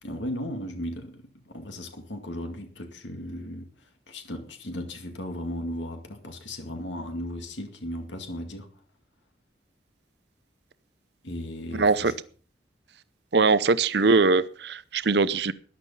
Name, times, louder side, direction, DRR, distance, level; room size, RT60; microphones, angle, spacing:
voice 1, 0.0-8.7 11.2-12.1, left 1 dB, 80° left, 5 dB, 2.3 m, -36 dB
voice 2, 11.7-12.1 13.3-15.5, right 4 dB, 65° right, 15 dB, 0.7 m, -21 dB
14.0 x 11.0 x 5.6 m, 0.42 s
head